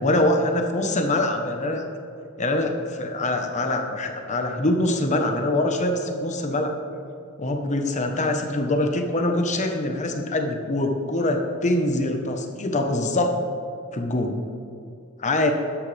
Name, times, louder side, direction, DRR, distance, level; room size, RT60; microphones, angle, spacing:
voice 1, 0.0-1.8 2.4-6.7 7.4-13.4 13.9-14.4 15.2-15.5, left 1 dB, 35° left, 4 dB, 1.1 m, -24 dB
13.0 x 11.0 x 3.4 m, 2.6 s
head